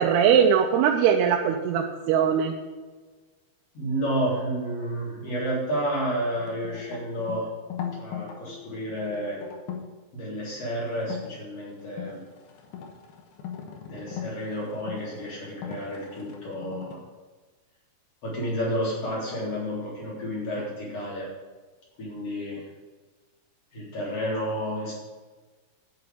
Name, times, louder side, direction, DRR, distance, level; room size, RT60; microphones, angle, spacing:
voice 1, 0.0-2.5, right 8 dB, 85° right, 1 dB, 2.8 m, -21 dB
voice 2, 3.7-7.5 7.9-9.4 10.1-12.2 13.9-17.0 18.2-21.3 22.0-22.6 23.7-24.9, equal, 40° left, -6 dB, 4.5 m, -31 dB
sound 1, 6.4-9.9 11.0-11.3 11.8-17.0, left 8 dB, 75° left, 3.0 m, -39 dB
11.0 x 6.1 x 8.6 m, 1.3 s
omnidirectional pair, 4.6 m